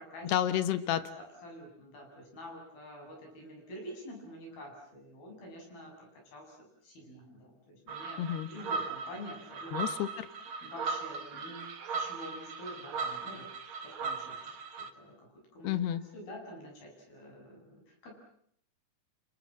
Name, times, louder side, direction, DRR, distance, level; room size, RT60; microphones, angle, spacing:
voice 1, 0.2-1.0 8.2-8.5 9.7-10.3 15.6-16.0, left 11 dB, 90° left, 12 dB, 3.4 m, -30 dB
voice 2, 1.0-8.2 8.5-9.7 10.6-13.5 13.8-15.8 16.1-18.2, equal, 65° left, 1 dB, 9.7 m, -48 dB
sound 1, 7.9-14.9, right 4 dB, 50° right, 1.7 m, -38 dB
28.5 x 27.5 x 7.6 m, 0.67 s
omnidirectional pair, 4.5 m